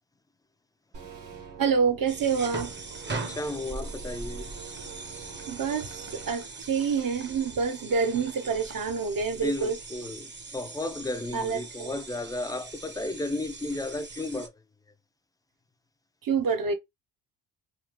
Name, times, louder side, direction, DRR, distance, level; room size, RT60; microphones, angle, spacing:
sound 1, 0.9-6.3, right 6 dB, 70° right, 1.9 m, -46 dB
voice 1, 1.6-2.7 5.5-9.8 11.3-11.9 16.2-16.7, right 5 dB, 50° right, 1.0 m, -27 dB
sound 2, 2.1-14.5, right 3 dB, 25° right, 0.9 m, -41 dB
voice 2, 3.1-4.5 9.3-14.5, left 2 dB, 10° left, 0.5 m, -34 dB
3.7 x 2.3 x 2.9 m
cardioid pair, 85°, 45 cm